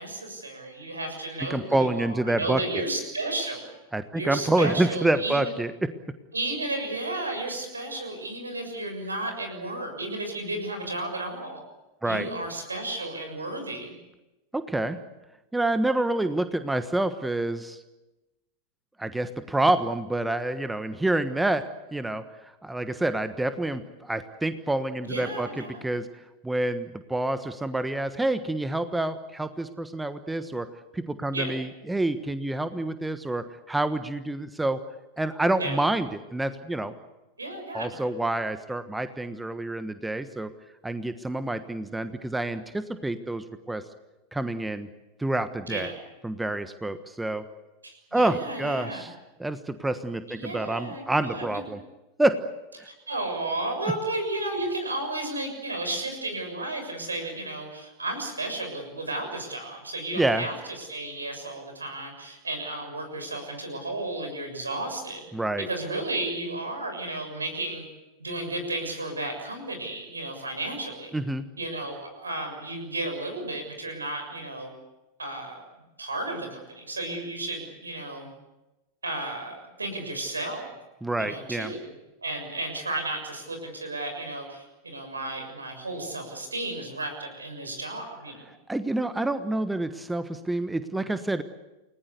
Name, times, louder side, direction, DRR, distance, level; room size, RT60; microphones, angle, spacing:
voice 1, 0.0-3.7 4.2-5.5 6.3-11.6 12.0-13.9 25.0-25.8 31.3-31.5 35.6-35.8 37.4-37.9 45.7-46.0 47.8-49.1 50.3-51.6 52.8-65.3 65.7-67.8 68.2-71.1 71.6-74.7 75.2-75.6 76.0-78.3 79.0-80.7 81.2-81.9 82.2-88.5, right 2 dB, 75° right, 5 dB, 6.8 m, -33 dB
voice 2, 1.5-2.8 3.9-5.9 12.0-12.3 14.5-15.0 15.5-17.8 19.0-26.1 26.4-30.7 30.9-34.8 35.2-36.9 37.7-40.5 40.8-43.8 44.3-44.9 45.2-45.9 46.2-47.4 48.1-49.1 49.4-51.8 52.2-52.4 52.8-52.9 60.2-60.5 65.3-65.7 71.1-71.5 81.0-81.7 88.7-91.4, right 2 dB, 5° right, 11 dB, 1.3 m, -27 dB
29.5 x 19.5 x 8.3 m, 1.0 s
figure-of-eight pair, 90°, 0 cm